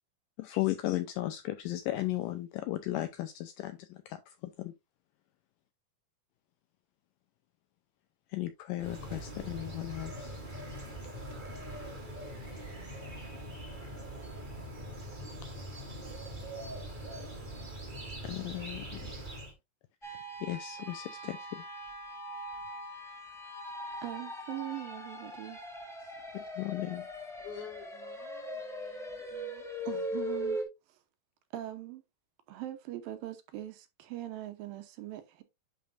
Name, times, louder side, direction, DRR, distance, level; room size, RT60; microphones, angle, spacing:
voice 1, 0.4-4.7 8.3-10.4 18.2-19.0 20.0-21.6 26.3-27.1, left 16 dB, 85° left, 2.0 m, -36 dB
sound 1, 8.8-19.5, right 1 dB, 20° right, 1.2 m, -42 dB
sound 2, 20.0-30.6, equal, 5° left, 0.5 m, -40 dB
Wind instrument woodwind instrument, 20.9-25.4, left 6 dB, 40° left, 3.4 m, -51 dB
voice 2, 24.0-25.6 26.3-26.4 29.9-30.6 30.9-31.0 31.5-32.0 32.5-35.4, right 14 dB, 75° right, 2.5 m, -41 dB
voice 3, 27.4-29.7, left 7 dB, 55° left, 2.8 m, -49 dB
10.5 x 4.9 x 2.5 m
omnidirectional pair, 4.4 m